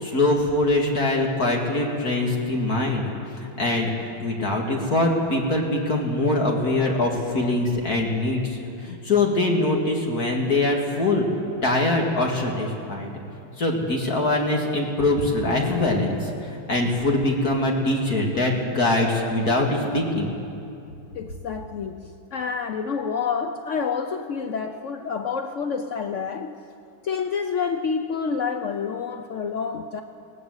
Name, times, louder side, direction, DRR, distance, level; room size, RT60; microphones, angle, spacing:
voice 1, 0.0-3.9 4.2-11.3 11.6-13.1 13.6-20.3, left 2 dB, 50° left, 0 dB, 2.6 m, -23 dB
voice 2, 21.1-26.6 27.0-30.0, left 6 dB, 80° left, 7 dB, 0.6 m, -28 dB
20.0 x 18.5 x 8.0 m, 2.6 s
omnidirectional pair, 2.2 m